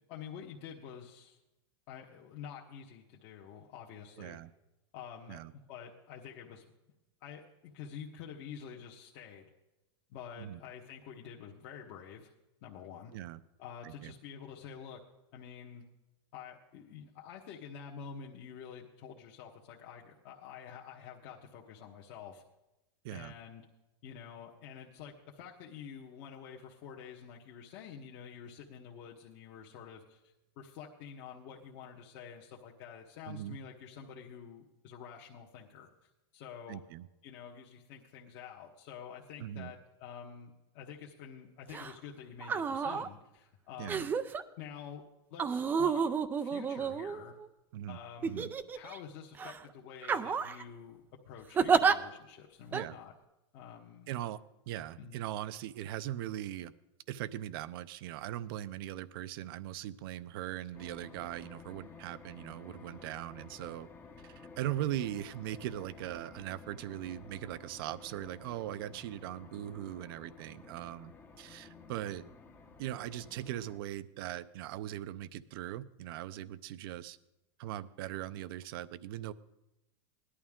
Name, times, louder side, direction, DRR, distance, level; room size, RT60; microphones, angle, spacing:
voice 1, 0.1-1.4 1.9-4.4 4.9-6.6 7.2-9.5 10.1-12.3 12.6-13.1 13.6-15.0 15.3-15.8 16.3-22.4 23.1-23.6 24.0-36.8 37.2-44.1 44.6-45.0 45.3-46.0 46.4-47.3 47.9-53.1 53.5-54.2 55.0-55.2, left 7 dB, 45° left, -2 dB, 1.3 m, -48 dB
voice 2, 4.2-4.5 5.3-5.5 10.4-10.6 13.1-13.4 13.8-14.1 23.0-23.3 33.3-33.6 36.7-37.1 39.4-39.7 43.8-44.0 47.7-48.0 48.2-48.5 52.7-52.9 54.1-54.4 54.7-56.7 57.1-63.9 64.2-71.1 71.4-72.2 72.8-77.2 77.6-79.3, right 13 dB, 55° right, 16 dB, 0.6 m, -40 dB
sound 1, 41.7-41.9 42.4-43.1 43.9-44.4 45.4-47.5 48.2-49.0 49.4-49.6 50.0-50.6 51.6-52.0 52.7-52.8, right 6 dB, 15° right, 0.4 m, -30 dB
sound 2, 60.7-73.8, left 4 dB, 15° left, 0.8 m, -53 dB
17.5 x 11.5 x 3.7 m, 0.95 s
supercardioid pair, 155°, 14 cm